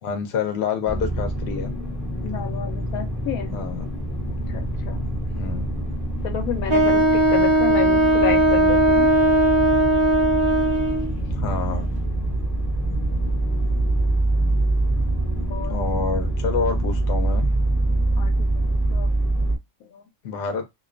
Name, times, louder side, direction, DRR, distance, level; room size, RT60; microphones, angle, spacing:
voice 1, 0.0-1.7 3.5-3.9 5.3-5.9 11.3-11.9 15.6-17.5 20.2-20.7, left 5 dB, 60° left, 0.8 m, -27 dB
sound 1, 0.9-19.6, right 1 dB, 20° left, 0.5 m, -25 dB
voice 2, 2.2-3.5 4.5-5.1 6.2-9.1 15.5-15.8 18.2-18.6 18.9-19.1 19.9-20.0, left 7 dB, 80° left, 1.0 m, -30 dB
Wind instrument woodwind instrument, 6.7-11.1, right 1 dB, 35° right, 0.4 m, -18 dB
2.4 x 2.2 x 2.4 m
omnidirectional pair, 1.6 m